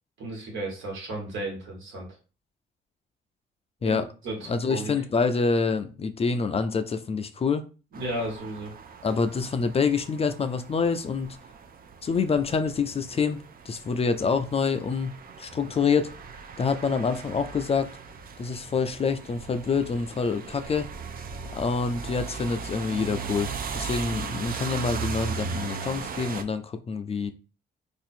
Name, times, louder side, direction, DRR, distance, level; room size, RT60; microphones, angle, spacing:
voice 1, 0.2-2.0 3.8-4.0 4.2-4.9 7.9-8.7 18.5-18.6, right 1 dB, 75° right, -1 dB, 1.5 m, -34 dB
voice 2, 4.5-7.6 9.0-11.4 12.0-16.1 16.6-17.9 18.4-20.9 21.5-27.3, left 5 dB, 30° left, 9 dB, 0.4 m, -26 dB
sound 1, 7.9-26.4, right 6 dB, 45° right, 0.5 m, -38 dB
2.7 x 2.5 x 4.2 m, 0.34 s
cardioid pair, 90°, 20 cm